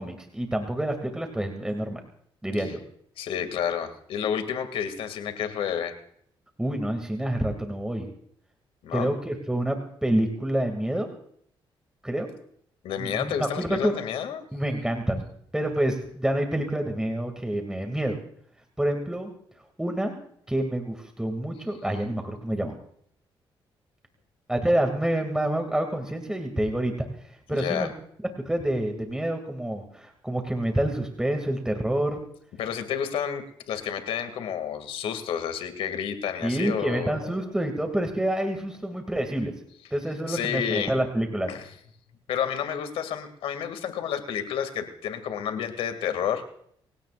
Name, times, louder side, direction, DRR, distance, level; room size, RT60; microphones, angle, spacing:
voice 1, 0.0-2.0 2.4-2.8 6.6-8.1 8.9-11.1 12.0-12.3 13.0-13.9 14.5-15.3 15.5-18.2 18.8-19.3 19.8-20.1 20.5-22.7 24.5-26.9 27.5-27.9 28.5-32.2 36.4-39.5 39.9-41.5, right 1 dB, 5° right, 4 dB, 2.5 m, -27 dB
voice 2, 3.2-5.9 8.8-9.1 12.8-14.4 27.5-27.9 32.6-37.4 40.3-40.9 41.5-41.7 42.3-46.4, left 8 dB, 85° left, 7 dB, 2.5 m, -30 dB
27.5 x 17.0 x 2.6 m, 0.67 s
cardioid pair, 80°, 9 cm